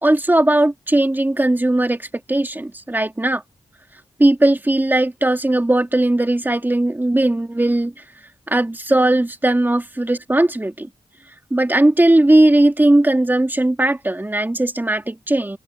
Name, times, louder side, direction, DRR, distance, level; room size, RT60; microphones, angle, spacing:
voice 1, 0.0-3.4 4.2-7.9 8.5-10.9 11.5-15.6, right 1 dB, 15° right, 2.5 m, -17 dB
cardioid pair, 75°, 11 cm